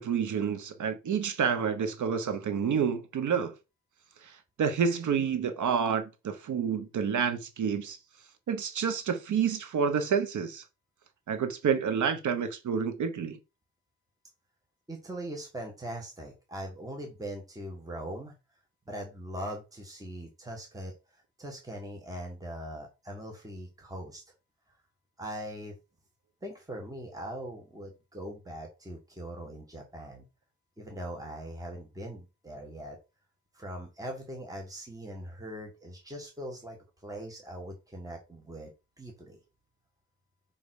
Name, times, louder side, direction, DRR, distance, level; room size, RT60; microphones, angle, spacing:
voice 1, 0.0-3.5 4.2-4.3 4.6-8.0 8.5-10.6 11.3-13.4, right 6 dB, 75° right, 1.1 m, -29 dB
voice 2, 14.9-18.3 18.9-24.2 25.2-25.7 26.4-30.2 30.8-33.0 33.5-38.7 39.0-39.4, right 1 dB, 10° right, 1.7 m, -41 dB
5.4 x 5.1 x 6.4 m
wide cardioid pair, 155°, 30 cm